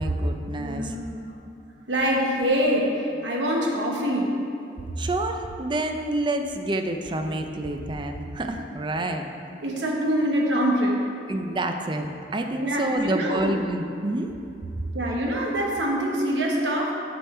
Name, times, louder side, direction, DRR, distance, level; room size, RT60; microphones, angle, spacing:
voice 1, 0.0-0.9 5.0-9.2 11.3-14.3, right 1 dB, 25° right, 5 dB, 0.5 m, -28 dB
voice 2, 0.6-1.4 1.9-4.4 9.6-11.0 12.6-13.6 14.9-16.9, equal, 90° right, -1 dB, 1.2 m, -25 dB
7.1 x 6.8 x 4.3 m, 2.6 s
head